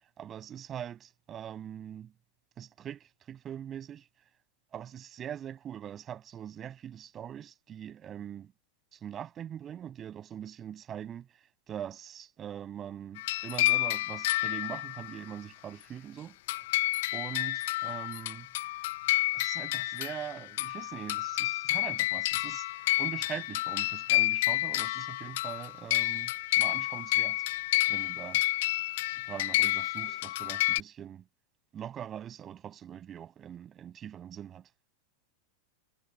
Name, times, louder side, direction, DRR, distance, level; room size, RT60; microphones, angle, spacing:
voice 1, 0.2-2.1 2.6-4.1 4.7-8.5 8.9-11.3 11.7-16.4 17.1-18.5 19.3-27.4 27.9-28.4 29.2-31.2 31.7-34.7, right 9 dB, 25° right, 6.3 m, -42 dB
sound 1, 13.2-15.2 16.5-30.8, left 18 dB, 50° left, 0.5 m, -30 dB
figure-of-eight pair, 90°, 0 cm